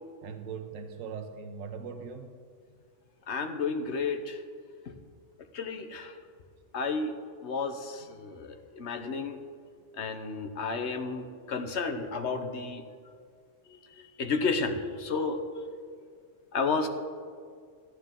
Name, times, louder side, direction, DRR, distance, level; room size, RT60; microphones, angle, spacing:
voice 1, 0.2-2.3, right 6 dB, 90° right, 7 dB, 1.1 m, -40 dB
voice 2, 3.3-4.4 4.9-5.0 5.5-6.2 6.7-7.2 7.4-9.4 9.9-12.8 13.7-15.4 16.5-16.9, left 4 dB, 65° left, 7 dB, 1.2 m, -32 dB
14.5 x 11.5 x 3.7 m, 2.1 s
omnidirectional pair, 1.3 m